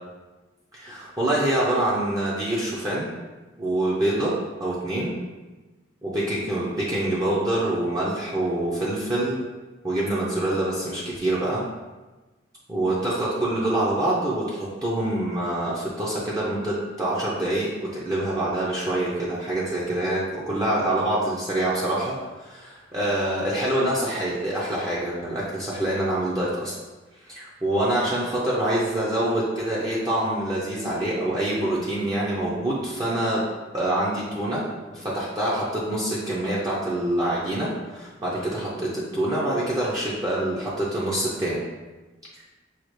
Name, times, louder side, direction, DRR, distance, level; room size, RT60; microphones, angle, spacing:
voice 1, 0.7-3.1 3.6-5.2 6.0-9.4 9.8-11.6 12.7-26.8 27.2-33.5 33.7-41.6, right 1 dB, 20° right, -7 dB, 0.7 m, -26 dB
6.3 x 2.4 x 3.1 m, 1.2 s
head